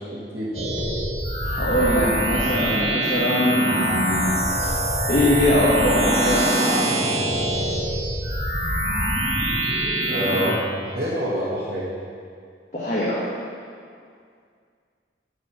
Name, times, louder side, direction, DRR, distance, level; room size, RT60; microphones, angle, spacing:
voice 1, 0.1-0.5 10.1-12.0, equal, 55° right, -11 dB, 1.8 m, -27 dB
sound 1, 0.5-10.5, right 1 dB, 35° right, 2.0 m, -24 dB
voice 2, 1.4-4.4 5.1-6.9 12.7-13.2, left 1 dB, 40° left, -8 dB, 1.6 m, -22 dB
12.5 x 4.8 x 5.9 m, 2.2 s
head